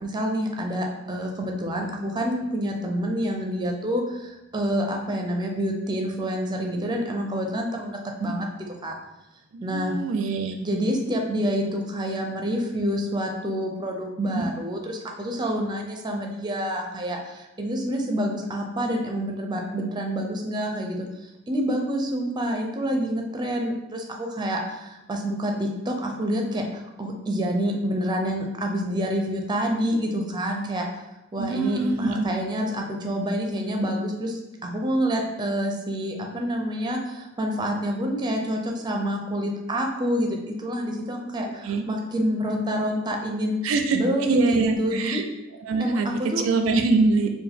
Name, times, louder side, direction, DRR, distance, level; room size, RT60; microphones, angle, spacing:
voice 1, 0.0-9.0 9.6-9.9 10.6-21.1 21.5-30.9 31.3-43.6 43.9-45.2 45.8-46.4, equal, 20° right, 2 dB, 0.5 m, -27 dB
voice 2, 9.5-10.6 14.3-14.5 31.4-32.2 41.5-41.8 43.6-45.2 45.6-46.1 46.4-47.3, right 3 dB, 80° right, 6 dB, 0.4 m, -24 dB
4.6 x 2.2 x 3.5 m, 0.98 s
head